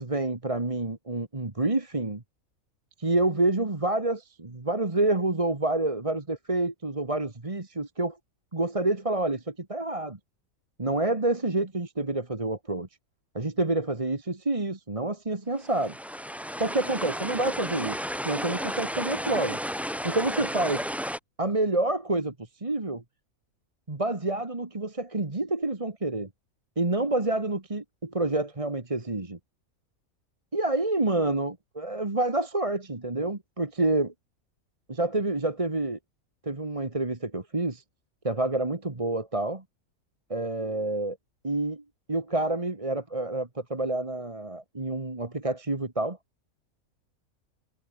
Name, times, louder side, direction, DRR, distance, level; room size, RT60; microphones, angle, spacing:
voice 1, 0.0-2.2 3.0-8.2 8.5-10.2 10.8-12.9 13.3-15.9 16.6-19.6 20.0-20.9 21.4-23.0 23.9-26.3 26.8-29.4 30.5-34.1 34.9-36.0 36.4-37.8 38.2-39.6 40.3-41.2 41.4-41.8 42.1-46.2, right 2 dB, 25° right, 1.9 m, -28 dB
sound 1, 15.6-21.2, equal, ahead, 1.7 m, -33 dB
omnidirectional pair, 1.5 m